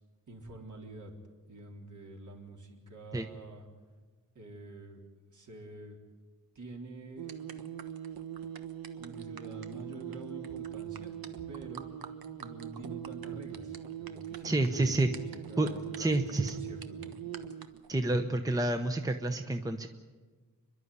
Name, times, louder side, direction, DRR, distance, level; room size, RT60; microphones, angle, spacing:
voice 1, 0.3-1.1 1.5-3.7 4.3-5.0 5.3-6.0 6.5-7.3 9.0-11.9 12.4-17.1 17.9-18.1, right 2 dB, 55° right, 0 dB, 4.0 m, -47 dB
sound 1, 7.2-17.9, right 10 dB, 85° right, 1.3 m, -42 dB
voice 2, 14.4-15.1 15.6-15.7 16.0-16.6 17.9-19.9, right 2 dB, 10° right, 7 dB, 0.9 m, -29 dB
29.5 x 11.5 x 9.7 m, 1.4 s
wide cardioid pair, 155°, 35 cm